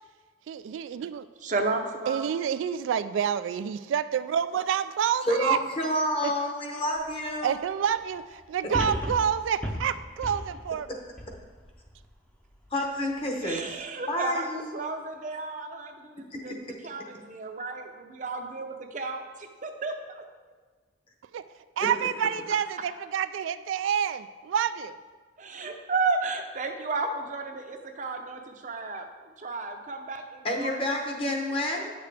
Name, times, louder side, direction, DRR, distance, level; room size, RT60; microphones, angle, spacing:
voice 1, 0.5-1.3 2.1-5.6 6.2-6.3 7.4-10.9 21.3-21.4 21.8-25.0, right 8 dB, 80° right, 13 dB, 0.3 m, -28 dB
voice 2, 1.4-2.3 13.4-16.6 16.8-20.2 25.4-31.2, right 3 dB, 40° right, 5 dB, 0.6 m, -33 dB
voice 3, 5.2-7.6 12.7-13.6 14.1-14.8 16.3-16.5 21.8-21.9 30.4-31.9, left 1 dB, 30° left, 1 dB, 0.9 m, -29 dB
sound 1, 7.0-7.1 8.7-12.0 12.5-12.6, equal, 5° left, 0.6 m, -35 dB
8.9 x 6.7 x 3.4 m, 1.4 s
head